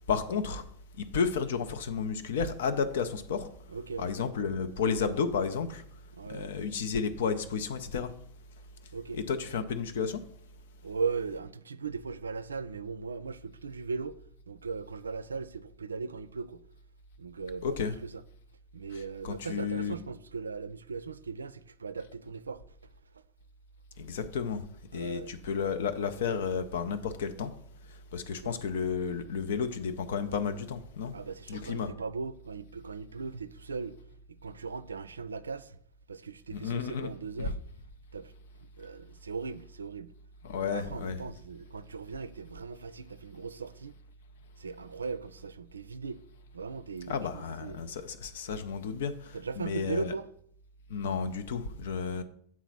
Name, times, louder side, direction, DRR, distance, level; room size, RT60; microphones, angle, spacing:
voice 1, 0.1-0.6 1.0-3.5 4.0-5.8 6.3-8.1 9.1-10.2 17.6-18.0 18.9-20.0 24.0-24.6 24.9-27.5 28.1-31.1 31.5-31.9 36.5-37.1 37.4-37.5 40.4-41.2 47.1-50.1 50.9-52.2, left 6 dB, 65° left, 0.7 m, -32 dB
voice 2, 3.7-4.1 6.1-6.5 8.9-9.2 10.8-14.2 14.5-16.6 17.2-18.2 18.7-22.6 24.9-25.3 28.3-28.6 31.1-34.0 34.3-35.8 36.1-37.6 38.1-38.3 38.8-40.1 40.6-44.0 44.6-46.2 46.5-47.8 49.3-50.3 52.2-52.3, right 5 dB, 80° right, 0.3 m, -38 dB
7.4 x 4.0 x 5.9 m
figure-of-eight pair, 85°, 0 cm